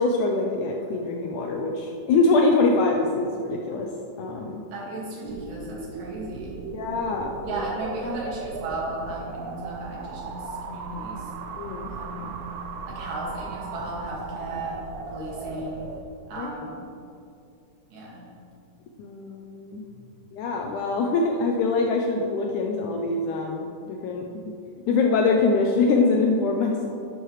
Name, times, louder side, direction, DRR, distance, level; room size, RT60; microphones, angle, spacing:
voice 1, 0.0-3.9 4.2-4.6 6.7-7.6 11.6-11.9 16.4-16.5 19.0-19.8 20.3-24.5 24.9-26.9, left 3 dB, 75° left, 1 dB, 1.9 m, -24 dB
voice 2, 4.7-6.6 7.4-11.3 11.9-12.4 12.9-14.8 15.1-15.9 16.3-16.8 17.9-18.2 19.9-20.1, right 2 dB, 70° right, -4 dB, 3.6 m, -35 dB
sound 1, 5.2-16.0, right 4 dB, 90° right, 1.6 m, -37 dB
11.0 x 10.5 x 3.2 m, 2.5 s
omnidirectional pair, 4.1 m